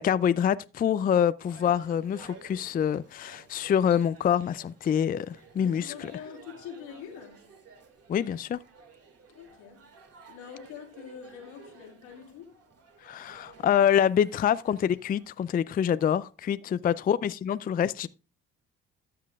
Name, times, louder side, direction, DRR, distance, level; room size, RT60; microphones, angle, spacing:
voice 1, 0.0-6.1 8.1-8.6 13.0-18.1, left 9 dB, 30° left, 0.4 m, -26 dB
sound 1, 1.4-15.3, right 5 dB, 50° right, 2.2 m, -54 dB
voice 2, 5.6-7.6 9.3-9.9 10.3-12.6 16.6-17.0, left 8 dB, 85° left, 2.2 m, -45 dB
13.5 x 7.4 x 2.4 m
supercardioid pair, 65°, 31 cm